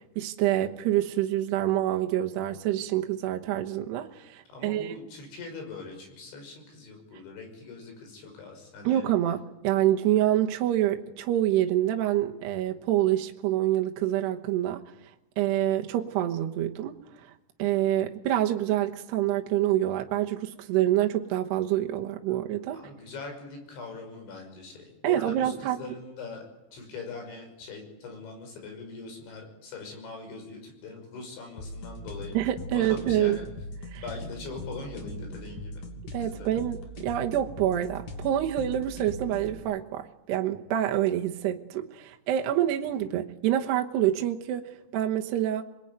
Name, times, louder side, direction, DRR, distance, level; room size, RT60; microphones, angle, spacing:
voice 1, 0.2-5.0 8.8-14.8 15.4-16.9 17.2-17.3 17.6-22.8 25.0-25.8 32.3-33.4 33.9-34.0 36.1-45.6, right 12 dB, 70° right, 2 dB, 3.0 m, -26 dB
voice 2, 4.5-9.1 22.3-22.4 22.7-26.4 26.7-32.4 32.7-33.4 34.0-35.9 36.2-36.5, left 3 dB, 70° left, 4 dB, 8.3 m, -42 dB
sound 1, 31.6-39.6, left 1 dB, 45° left, 3.9 m, -40 dB
27.0 x 21.5 x 9.3 m, 0.95 s
omnidirectional pair, 5.5 m